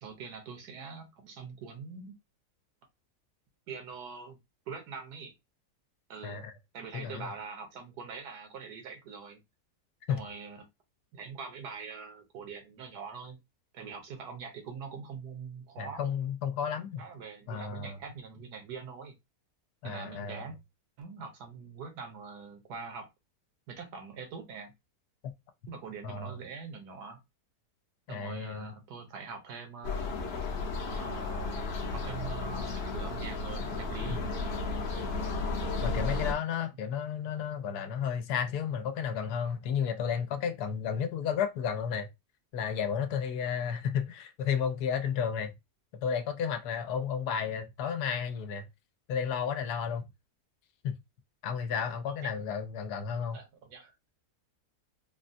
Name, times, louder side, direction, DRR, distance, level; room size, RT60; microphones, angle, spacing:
voice 1, 0.0-2.1 3.7-4.4 4.7-5.3 6.1-6.4 6.7-9.4 10.1-10.7 11.1-13.4 13.7-16.0 17.0-19.1 19.8-20.6 21.0-23.1 23.7-24.7 25.7-27.2 28.1-30.2 30.9-34.3 52.1-52.3 53.3-53.9, right 5 dB, 80° right, 1.4 m, -43 dB
voice 2, 6.2-6.5 6.9-7.3 10.1-10.2 15.8-17.0 17.5-18.0 19.8-20.4 26.0-26.4 28.1-28.7 34.1-34.3 35.8-42.1 42.5-45.5 45.9-48.7 49.1-50.1 50.8-51.0 51.4-53.4, left 7 dB, 80° left, 1.1 m, -32 dB
sound 1, 29.8-36.3, left 3 dB, 60° left, 0.7 m, -33 dB
3.6 x 2.2 x 2.5 m
omnidirectional pair, 1.7 m